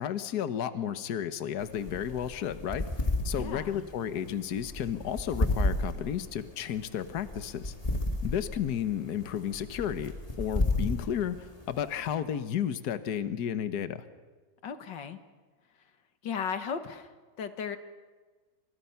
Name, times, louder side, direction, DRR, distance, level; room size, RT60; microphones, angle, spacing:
voice 1, 0.0-2.8 3.2-7.7 8.2-14.0, left 9 dB, 65° left, 11 dB, 1.6 m, -32 dB
sound 1, 1.6-12.1, left 2 dB, 20° left, 2.3 m, -33 dB
voice 2, 3.4-3.9 14.6-15.2 16.2-17.1 17.4-17.8, left 6 dB, 85° left, 9 dB, 2.2 m, -35 dB
30.0 x 26.5 x 5.8 m, 1.4 s
omnidirectional pair, 1.9 m